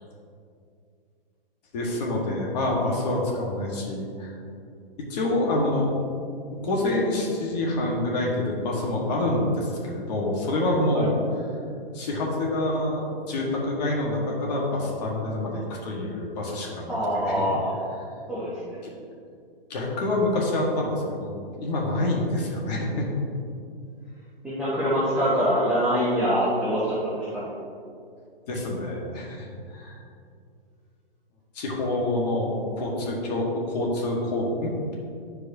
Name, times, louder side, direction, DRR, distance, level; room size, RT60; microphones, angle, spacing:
voice 1, 1.7-4.4 5.1-5.9 6.5-11.1 11.9-17.5 19.7-23.1 28.5-30.0 31.5-34.9, left 1 dB, 45° left, -2 dB, 1.4 m, -27 dB
voice 2, 16.9-17.7 18.3-18.8 24.4-27.5, equal, 5° right, -12 dB, 1.4 m, -25 dB
11.5 x 4.7 x 2.7 m, 2.4 s
hypercardioid pair, 135°, 30 cm